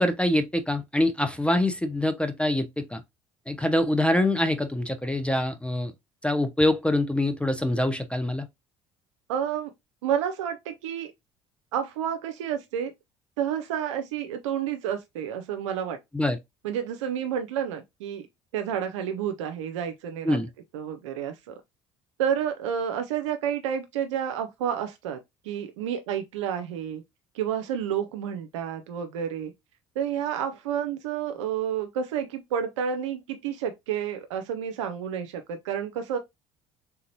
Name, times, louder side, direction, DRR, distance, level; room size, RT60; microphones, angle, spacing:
voice 1, 0.0-3.0 3.5-5.9 6.2-8.5 16.1-16.4 20.2-20.5, left 1 dB, 5° left, 0.5 m, -25 dB
voice 2, 9.3-9.7 10.0-11.1 11.7-12.9 13.4-16.0 16.6-18.3 18.5-20.4 20.7-21.6 22.2-25.2 25.4-27.0 27.3-29.5 30.0-36.2, right 8 dB, 85° right, 0.4 m, -30 dB
3.4 x 2.9 x 2.7 m
hypercardioid pair, 65°, 15 cm